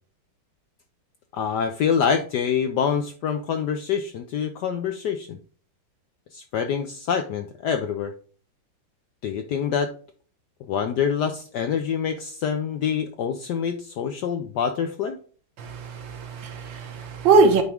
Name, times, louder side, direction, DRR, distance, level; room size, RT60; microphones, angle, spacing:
voice 1, 1.3-5.4 6.3-8.1 9.2-9.9 10.6-15.2, left 7 dB, 75° left, 6 dB, 1.0 m, -26 dB
voice 2, 15.6-17.6, right 4 dB, 65° right, 6 dB, 1.6 m, -21 dB
9.2 x 3.6 x 3.4 m, 0.43 s
omnidirectional pair, 2.3 m